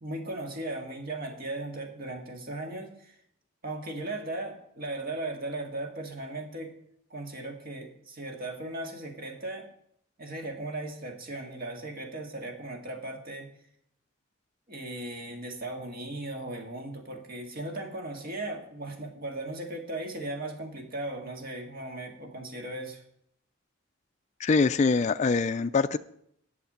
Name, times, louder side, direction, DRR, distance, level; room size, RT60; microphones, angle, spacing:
voice 1, 0.0-3.1 3.6-6.7 7.1-9.7 10.2-13.5 14.7-23.0, right 2 dB, 45° right, 2 dB, 2.0 m, -37 dB
voice 2, 24.4-26.0, left 4 dB, 35° left, 10 dB, 0.3 m, -24 dB
8.2 x 7.3 x 8.7 m, 0.72 s
head